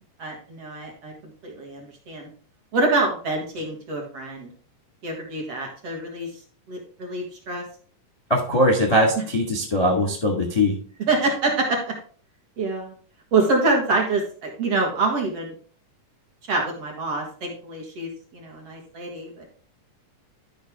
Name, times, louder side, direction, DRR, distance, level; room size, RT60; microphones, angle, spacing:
voice 1, 0.2-1.1 1.4-2.3 2.7-4.5 5.0-6.3 6.7-7.6 11.1-11.9 12.6-12.9 13.3-15.5 16.5-19.5, right 3 dB, 50° right, 0 dB, 2.5 m, -26 dB
voice 2, 8.3-10.8, left 1 dB, 20° left, 0 dB, 1.1 m, -21 dB
12.0 x 5.4 x 3.6 m, 0.43 s
omnidirectional pair, 3.8 m